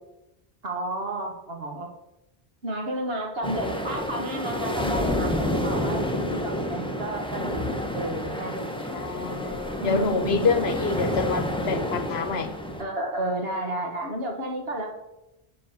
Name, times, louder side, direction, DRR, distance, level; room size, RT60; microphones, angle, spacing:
voice 1, 0.6-1.9 2.6-8.8 9.4-10.7 12.8-14.9, right 1 dB, 70° right, 2 dB, 1.9 m, -32 dB
sound 1, 3.4-12.8, left 1 dB, 5° left, 1.1 m, -29 dB
voice 2, 8.9-12.5, left 4 dB, 75° left, 11 dB, 1.1 m, -27 dB
8.3 x 6.2 x 7.2 m, 0.92 s
omnidirectional pair, 1.1 m